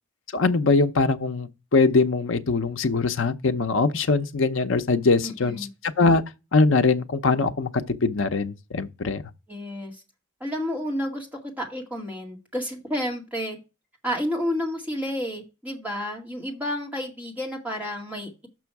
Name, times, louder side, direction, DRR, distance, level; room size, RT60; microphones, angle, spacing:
voice 1, 0.3-6.2 6.5-7.7 8.0-9.2, left 3 dB, 70° left, 0.7 m, -22 dB
voice 2, 5.2-5.7 9.5-9.9 10.4-13.6 14.0-18.5, equal, 10° right, 2.0 m, -30 dB
6.2 x 6.1 x 4.6 m
head